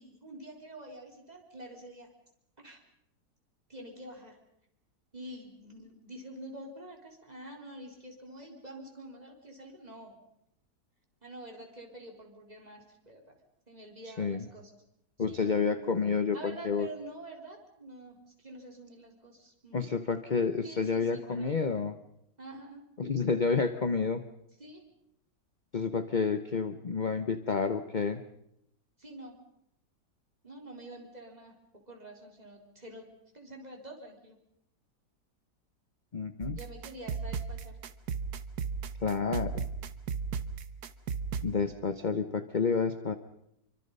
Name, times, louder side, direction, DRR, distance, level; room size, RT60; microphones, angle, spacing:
voice 1, 0.0-2.1 2.6-2.8 3.7-4.4 5.1-10.2 11.2-13.4 13.7-14.7 15.3-15.5 16.3-19.8 20.6-21.7 22.4-22.8 24.6-24.8 29.0-29.4 30.4-33.1 33.3-34.4 36.5-37.8, right 1 dB, 20° right, 1 dB, 4.2 m, -47 dB
voice 2, 15.2-16.9 19.7-22.0 23.0-24.2 25.7-28.2 36.1-36.6 39.0-39.6 41.4-43.2, left 5 dB, 35° left, 10 dB, 0.8 m, -29 dB
sound 1, 36.4-41.5, right 5 dB, 65° right, 1.5 m, -36 dB
27.0 x 24.5 x 5.5 m, 0.77 s
omnidirectional pair, 1.9 m